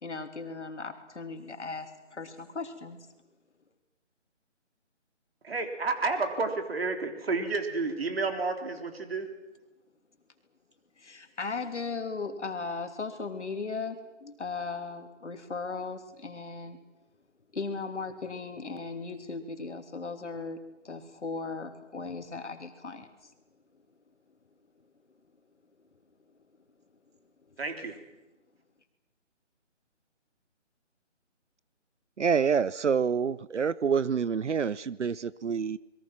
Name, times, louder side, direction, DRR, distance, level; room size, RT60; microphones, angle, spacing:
voice 1, 0.0-3.1 11.0-16.8 17.5-23.3, left 4 dB, 70° left, 6 dB, 3.2 m, -37 dB
voice 2, 5.4-9.3 27.6-28.0, right 3 dB, 55° right, 6 dB, 3.7 m, -31 dB
voice 3, 32.2-35.8, right 6 dB, 70° right, 20 dB, 0.8 m, -27 dB
28.0 x 22.0 x 6.0 m, 1.0 s
figure-of-eight pair, 155°, 36 cm